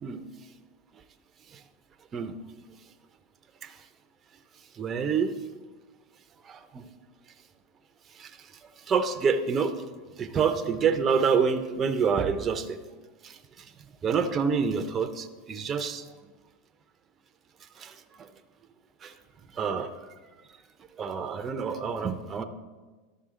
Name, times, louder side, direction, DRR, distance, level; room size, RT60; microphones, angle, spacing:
voice 1, 4.8-5.4 6.5-6.9 8.2-8.3 8.9-9.7 10.2-12.8 13.2-13.7 14.0-16.1 17.8-18.3 19.0-19.1 19.6-19.9 21.0-22.4, right 6 dB, 30° right, 8 dB, 0.6 m, -27 dB
12.0 x 5.5 x 3.8 m, 1.3 s
hypercardioid pair, 110°, 0 cm